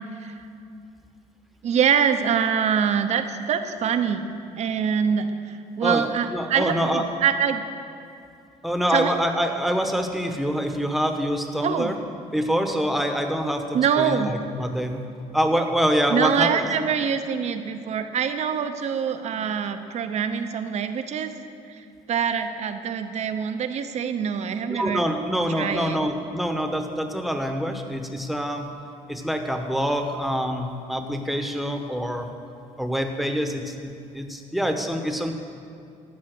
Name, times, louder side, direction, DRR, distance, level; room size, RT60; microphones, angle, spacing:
voice 1, 1.6-7.6 8.9-9.2 11.6-11.9 13.7-14.3 16.1-21.3 22.1-25.0 25.6-26.0, right 7 dB, 55° right, 8 dB, 0.8 m, -24 dB
voice 2, 5.8-7.0 8.6-12.0 12.3-15.1 15.3-16.9 24.7-28.7 29.1-32.3 32.8-35.3, equal, ahead, 5 dB, 1.1 m, -25 dB
13.0 x 5.6 x 7.9 m, 2.5 s
cardioid pair, 95°, 13 cm